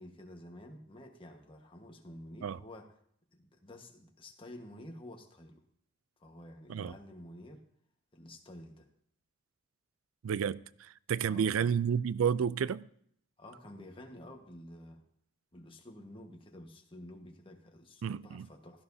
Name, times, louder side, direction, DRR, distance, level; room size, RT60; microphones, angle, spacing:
voice 1, 0.0-2.9 3.3-5.6 6.2-7.6 8.1-8.9 11.2-11.7 13.4-15.0 15.5-18.8, left 1 dB, 25° left, 1.3 m, -50 dB
voice 2, 10.2-12.8 18.0-18.5, right 7 dB, 85° right, 0.4 m, -31 dB
16.5 x 13.0 x 2.7 m
head